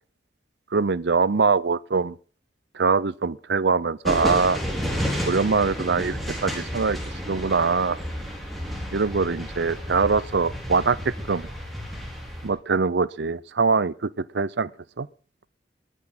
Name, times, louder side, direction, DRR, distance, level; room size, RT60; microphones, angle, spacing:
voice 1, 0.7-2.2 2.8-4.6 5.3-7.0 7.3-8.0 8.9-11.5 12.4-14.1 14.3-14.7 15.0-15.1, right 4 dB, 70° right, 0.6 m, -23 dB
sound 1, 4.0-12.5, equal, ahead, 4.9 m, -31 dB
22.5 x 10.0 x 3.9 m
head